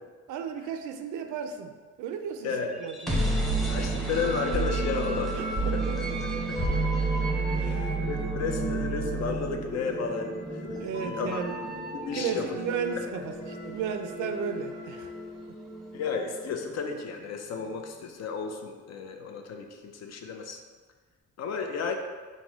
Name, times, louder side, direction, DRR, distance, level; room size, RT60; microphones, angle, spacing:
voice 1, 0.3-2.5 2.8-3.6 5.3-6.0 7.6-8.0 8.4-8.6 10.8-11.6 12.1-15.1, right 7 dB, 80° right, 7 dB, 0.5 m, -35 dB
voice 2, 2.4-2.8 3.7-5.5 5.7-5.8 6.5-6.6 7.2-10.8 11.1-11.4 11.9-12.4 15.9-20.6 21.4-22.0, left 5 dB, 60° left, 4 dB, 0.6 m, -33 dB
sound 1, 2.8-16.6, right 2 dB, ahead, 0.7 m, -31 dB
sound 2, 4.1-9.4 9.8-15.1, right 1 dB, 85° left, 1.3 m, -42 dB
4.0 x 2.1 x 4.5 m, 1.4 s
cardioid pair, 90°, 30 cm